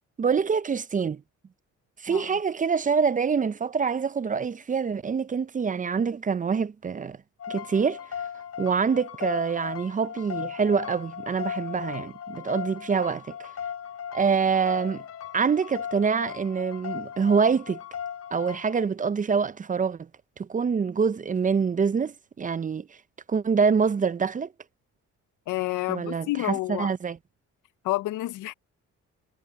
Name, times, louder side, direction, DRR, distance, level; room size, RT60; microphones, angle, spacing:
voice 1, 0.2-1.2 2.0-7.2 7.5-8.0 8.6-13.5 14.1-15.0 15.3-17.8 18.3-20.1 20.4-22.9 23.3-24.5 25.9-27.2, right 6 dB, 25° right, 0.5 m, -25 dB
sound 1, 7.4-18.9, left 8 dB, 55° left, 2.8 m, -37 dB
voice 2, 25.5-26.9 27.8-28.5, left 17 dB, 85° left, 0.7 m, -29 dB
cardioid pair, 90°, 30 cm